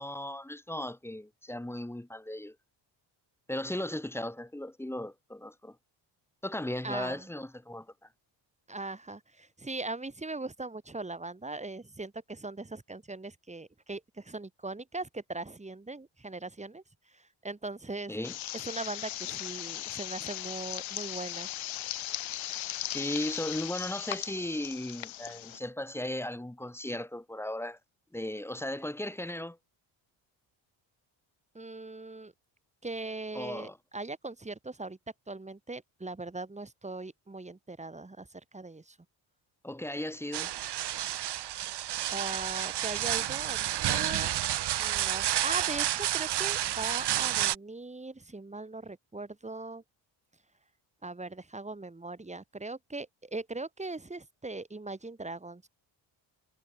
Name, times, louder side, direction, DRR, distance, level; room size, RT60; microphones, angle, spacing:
voice 1, 0.0-2.6 3.5-5.8 6.4-8.1 18.1-18.3 22.9-27.8 28.1-29.6 33.3-33.8 39.6-40.5, left 1 dB, 5° left, 2.1 m, -36 dB
voice 2, 6.8-7.3 8.7-16.8 17.1-18.2 18.5-21.5 31.6-32.3 32.8-35.0 35.3-39.0 42.1-44.3 44.8-49.8 51.0-55.7, right 2 dB, 15° right, 5.1 m, -40 dB
sound 1, 18.2-25.6, left 13 dB, 80° left, 3.3 m, -38 dB
sound 2, 40.3-47.6, right 12 dB, 55° right, 1.2 m, -30 dB
cardioid pair, 130°, 47 cm